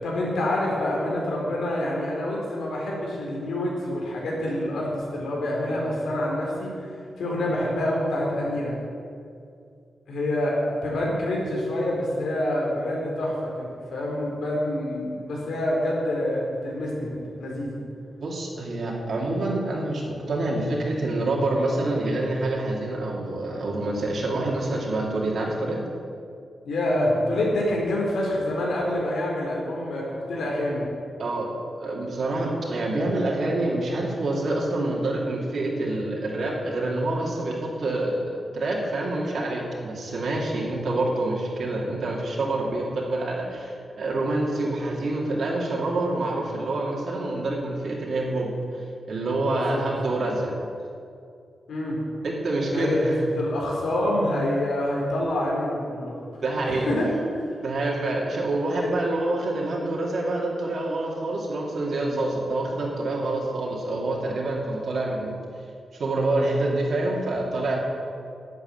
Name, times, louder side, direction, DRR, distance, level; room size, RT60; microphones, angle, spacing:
voice 1, 0.0-4.9 5.1-6.9 7.2-8.8 10.1-17.1 17.4-17.8 26.7-30.9 49.5-49.8 51.7-52.0 52.7-56.2 56.7-57.4 58.8-58.9, left 1 dB, 90° left, -3 dB, 4.1 m, -26 dB
voice 2, 18.2-25.8 31.2-31.5 31.8-50.5 52.2-53.2 56.4-56.9 57.6-65.4 65.9-67.8, right 2 dB, 55° right, -2 dB, 2.4 m, -27 dB
11.5 x 7.9 x 9.2 m, 2.4 s
wide cardioid pair, 145°, 0 cm